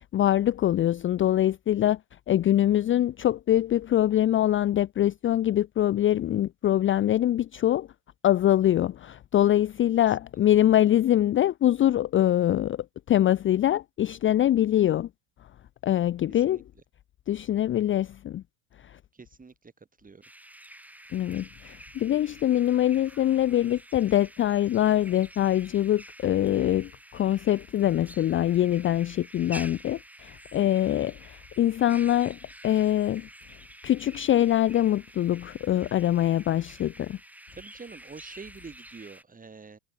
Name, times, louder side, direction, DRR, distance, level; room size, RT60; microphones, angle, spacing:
voice 1, 0.1-2.0 2.3-7.9 8.2-15.1 15.8-16.6 17.3-18.4 18.8-19.0 21.1-33.3 33.8-37.2, left 12 dB, 30° left, 0.5 m, -24 dB
voice 2, 16.3-16.6 19.1-19.7 20.0-20.3 30.5-31.0 37.5-39.8, right 4 dB, 20° right, 2.9 m, -46 dB
sound 1, 20.2-39.2, right 1 dB, 5° right, 5.4 m, -49 dB
hypercardioid pair, 80°, 43 cm